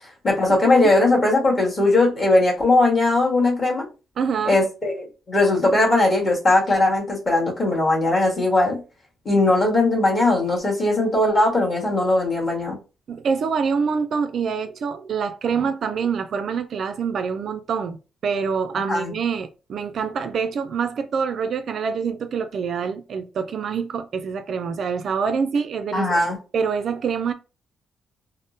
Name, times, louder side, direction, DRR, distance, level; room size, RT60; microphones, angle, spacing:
voice 1, 0.2-3.9 4.5-8.8 9.2-12.8 18.9-19.1 25.9-26.4, left 2 dB, 30° left, 1.4 m, -19 dB
voice 2, 4.2-4.6 13.1-26.2 26.5-27.3, right 6 dB, 55° right, 0.3 m, -26 dB
3.5 x 2.0 x 2.6 m
cardioid pair, 135°, 0 cm